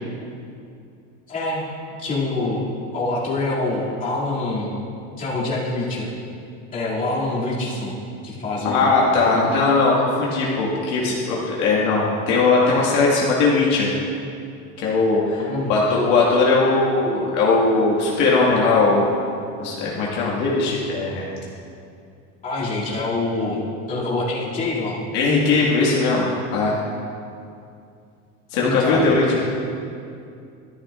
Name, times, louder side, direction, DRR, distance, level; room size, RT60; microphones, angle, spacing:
voice 1, 1.3-1.7 2.0-2.7 2.9-4.7 5.2-6.1 6.7-8.0 8.2-8.9 9.3-9.6 15.4-15.7 22.4-25.0 28.6-29.0, left 2 dB, 25° left, -8 dB, 2.4 m, -25 dB
voice 2, 8.6-13.9 14.8-19.2 19.6-21.3 25.1-26.7 28.5-29.4, left 3 dB, 60° left, -5 dB, 1.8 m, -19 dB
13.0 x 11.0 x 2.4 m, 2.5 s
cardioid pair, 160°, 35 cm